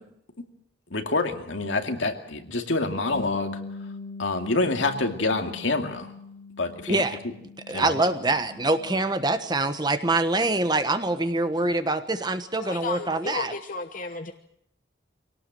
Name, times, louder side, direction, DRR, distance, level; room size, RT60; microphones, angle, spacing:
voice 1, 0.9-3.6 4.2-6.1 6.6-7.0 7.7-8.0, left 3 dB, 80° left, 4 dB, 2.4 m, -27 dB
Bass guitar, 3.1-9.4, left 3 dB, 60° left, 2.2 m, -41 dB
voice 2, 6.9-7.2 7.7-13.5, right 2 dB, 20° right, 9 dB, 1.2 m, -25 dB
voice 3, 12.6-14.3, left 3 dB, 45° left, 6 dB, 1.0 m, -33 dB
24.0 x 18.0 x 7.7 m, 0.75 s
head